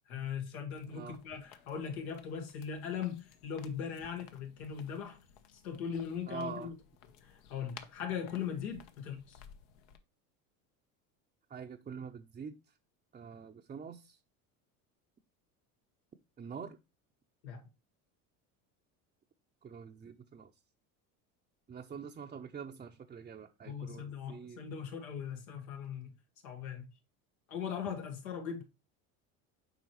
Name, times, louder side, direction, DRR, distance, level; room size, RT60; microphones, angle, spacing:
voice 1, 0.1-5.2 5.5-6.7 7.2-9.4 17.4-17.6 23.7-26.1 26.4-26.8 27.5-28.6, left 7 dB, 90° left, 1.7 m, -39 dB
sound 1, 0.7-10.0, left 8 dB, 75° left, 1.1 m, -58 dB
voice 2, 6.3-6.7 11.5-12.6 13.1-14.2 16.4-16.8 19.6-20.5 21.7-24.6, right 6 dB, 20° right, 0.5 m, -45 dB
7.8 x 4.9 x 3.1 m
supercardioid pair, 100°, 42 cm